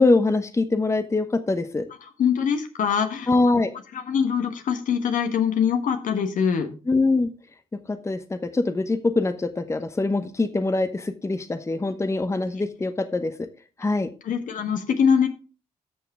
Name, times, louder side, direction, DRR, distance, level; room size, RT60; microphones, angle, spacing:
voice 1, 0.0-1.9 3.3-3.7 6.9-7.3 7.9-13.5 13.8-14.1, left 3 dB, 20° left, 10 dB, 0.9 m, -23 dB
voice 2, 2.2-3.3 3.9-6.7 14.3-15.3, left 7 dB, 60° left, 7 dB, 1.5 m, -23 dB
13.0 x 5.8 x 3.5 m, 0.35 s
hypercardioid pair, 45°, 15 cm